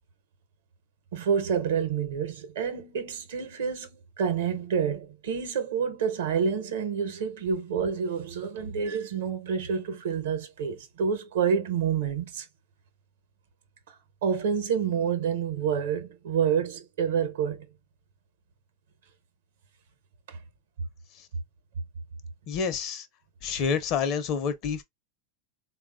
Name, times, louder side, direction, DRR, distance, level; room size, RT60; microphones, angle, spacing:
voice 1, 1.1-3.9 4.2-12.5 14.2-17.7 20.3-20.4, right 7 dB, 75° right, 0.8 m, -28 dB
voice 2, 22.5-23.1 23.4-24.8, left 6 dB, 50° left, 0.6 m, -28 dB
3.4 x 2.3 x 2.2 m
hypercardioid pair, 100°, 0 cm